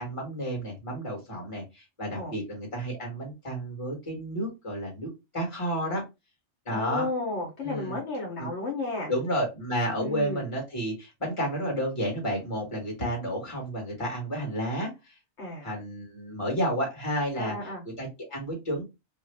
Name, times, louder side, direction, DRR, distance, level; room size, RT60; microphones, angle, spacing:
voice 1, 0.0-6.0 6.6-7.1 7.6-8.0 8.4-8.5 9.1-15.1 15.6-17.6 18.0-18.8, equal, 25° left, 1.5 m, -31 dB
voice 2, 6.7-9.1 10.0-10.4 15.4-15.7 17.4-17.8, left 2 dB, 65° left, 1.2 m, -33 dB
3.0 x 2.4 x 3.3 m
omnidirectional pair, 1.3 m